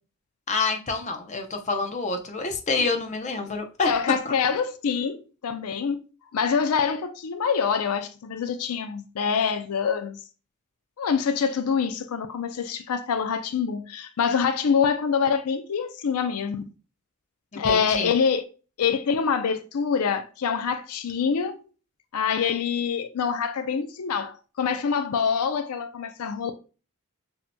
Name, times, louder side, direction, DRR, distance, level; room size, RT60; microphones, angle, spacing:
voice 1, 0.5-4.3 17.5-18.1, left 3 dB, 35° left, 0.7 m, -27 dB
voice 2, 3.8-6.0 6.3-10.2 11.0-16.7 17.6-18.4 18.8-21.6 22.1-26.5, left 6 dB, 85° left, 0.5 m, -25 dB
6.7 x 2.8 x 2.2 m
head